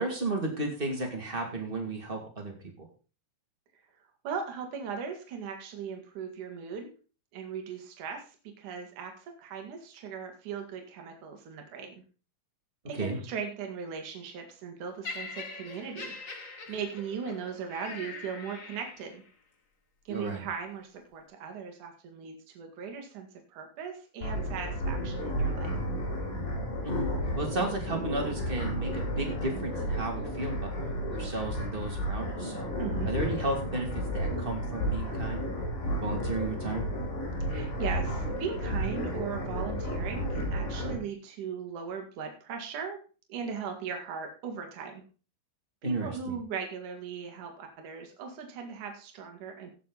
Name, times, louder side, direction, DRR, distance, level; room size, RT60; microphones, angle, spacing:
voice 1, 0.0-2.9 12.9-13.2 20.1-20.4 26.8-30.7 31.1-32.7 33.0-35.6 36.0-36.9 45.8-46.4, right 2 dB, 15° right, 2 dB, 2.3 m, -34 dB
voice 2, 4.2-6.9 7.3-11.9 12.9-19.2 20.0-25.7 32.8-33.1 37.5-43.0 43.3-45.0 45.8-49.7, right 6 dB, 65° right, 4 dB, 3.2 m, -38 dB
Laughter, 15.0-19.3 20.1-20.3, left 4 dB, 45° left, 1.0 m, -43 dB
sound 1, 24.2-40.9, equal, 75° left, 6.4 m, -32 dB
17.0 x 6.7 x 4.1 m, 0.36 s
omnidirectional pair, 4.0 m